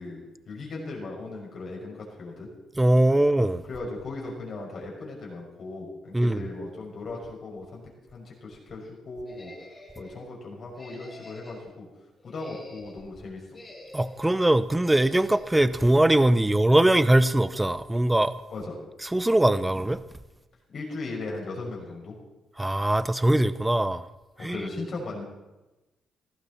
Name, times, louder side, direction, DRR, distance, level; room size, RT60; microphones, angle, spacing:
voice 1, 0.0-2.5 3.7-7.8 8.1-9.5 10.0-11.9 12.2-13.6 18.5-18.8 20.7-22.2 24.4-25.2, left 3 dB, 50° left, 5.9 m, -37 dB
voice 2, 2.8-3.7 6.1-6.4 13.9-18.3 19.0-20.0 22.6-24.1 24.4-24.7, right 1 dB, 10° right, 0.7 m, -21 dB
sound 1, 9.3-10.2 10.7-11.7 12.2-13.0 13.5-14.3 14.8-15.5, left 1 dB, 25° left, 4.3 m, -47 dB
17.5 x 15.0 x 4.2 m
cardioid pair, 90°, 0 cm